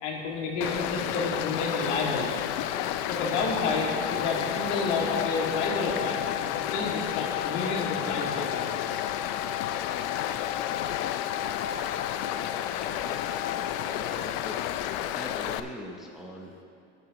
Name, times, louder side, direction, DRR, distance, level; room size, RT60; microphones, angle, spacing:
voice 1, 0.0-2.7 3.1-9.0, left 3 dB, 70° left, -1 dB, 2.2 m, -30 dB
Stream, 0.6-15.6, left 11 dB, 50° left, 0.5 m, -31 dB
sound 1, 3.2-14.1, left 9 dB, 25° left, 1.0 m, -38 dB
voice 2, 13.0-13.4 14.1-14.6 15.1-16.6, equal, ahead, -1 dB, 0.6 m, -42 dB
19.5 x 6.8 x 3.0 m, 2.7 s
supercardioid pair, 135°, 37 cm